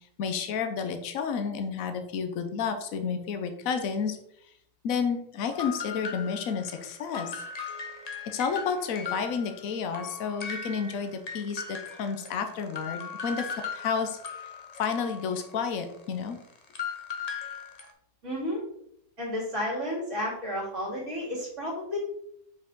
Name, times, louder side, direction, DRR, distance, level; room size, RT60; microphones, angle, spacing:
voice 1, 0.2-4.2 4.8-7.4 8.3-14.2 14.8-16.4, left 6 dB, 65° left, 7 dB, 1.2 m, -31 dB
sound 1, 5.5-9.7 9.9-17.9, left 5 dB, 40° left, 0.5 m, -38 dB
voice 2, 18.2-18.6 19.2-22.0, left 1 dB, 50° right, -3 dB, 2.7 m, -32 dB
6.0 x 4.8 x 3.7 m, 0.72 s
omnidirectional pair, 1.7 m